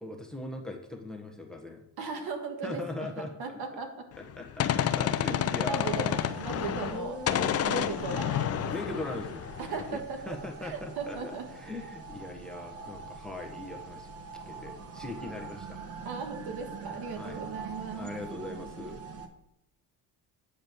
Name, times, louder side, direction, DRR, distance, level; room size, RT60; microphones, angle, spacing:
voice 1, 0.0-1.8 2.6-3.6 4.2-6.2 6.5-7.7 8.7-9.6 9.9-10.0 10.2-14.1 14.4-15.8 17.2-17.4 17.9-19.0, left 2 dB, ahead, 3 dB, 1.4 m, -40 dB
voice 2, 2.0-3.9 5.7-9.0 9.6-11.5 16.0-18.1, right 4 dB, 60° right, 5 dB, 1.8 m, -37 dB
Gunshot gunfire, 4.2-7.0 7.3-10.0, left 10 dB, 35° left, 0.6 m, -30 dB
sound 1, 5.7-19.3, right 4 dB, 35° right, 1.2 m, -44 dB
8.9 x 5.0 x 6.3 m, 0.80 s
supercardioid pair, 100°, 41 cm